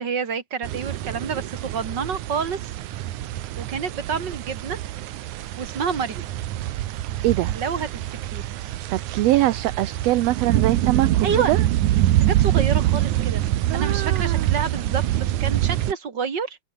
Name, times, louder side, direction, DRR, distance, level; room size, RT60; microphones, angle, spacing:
voice 1, 0.0-2.7 3.6-4.8 5.6-6.3 7.5-8.5 11.2-11.5 12.2-13.4 13.7-16.6, right 6 dB, 40° right, 3.0 m, -28 dB
sound 1, 0.6-15.9, right 13 dB, 90° right, 2.5 m, -25 dB
voice 2, 7.2-7.6 8.9-11.6 13.7-14.5, right 15 dB, 70° right, 1.8 m, -23 dB
omnidirectional pair, 3.3 m